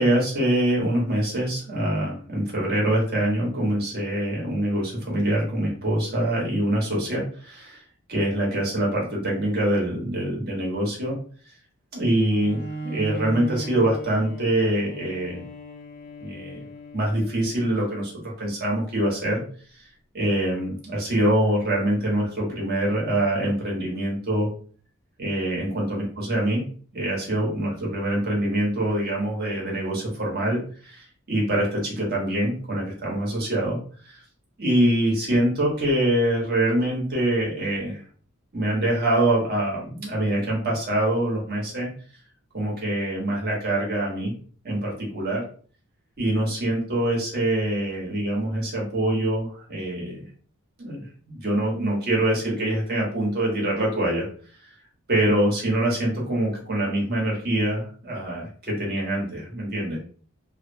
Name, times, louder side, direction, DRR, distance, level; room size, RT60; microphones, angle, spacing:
voice 1, 0.0-7.8 8.1-11.1 11.9-15.4 16.2-16.6 16.9-18.1 18.4-19.4 20.1-24.5 25.2-26.6 26.9-33.8 34.1-34.2 34.6-38.0 38.5-41.9 42.5-44.3 44.6-45.4 46.2-50.2 50.8-54.3 55.1-60.0, right 1 dB, 45° right, -2 dB, 1.1 m, -24 dB
Bowed string instrument, 12.3-18.0, right 1 dB, 40° left, 0.4 m, -38 dB
2.9 x 2.0 x 2.6 m, 0.44 s
head